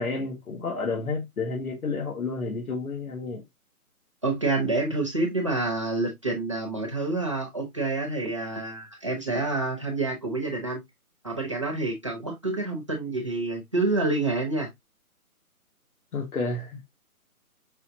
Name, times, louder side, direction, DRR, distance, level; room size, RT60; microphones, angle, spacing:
voice 1, 0.0-3.4 16.1-16.9, left 3 dB, 75° left, 1.5 m, -30 dB
voice 2, 4.2-10.8 11.2-14.7, right 2 dB, 20° right, 0.7 m, -28 dB
5.6 x 3.1 x 2.5 m
hypercardioid pair, 175°, 44 cm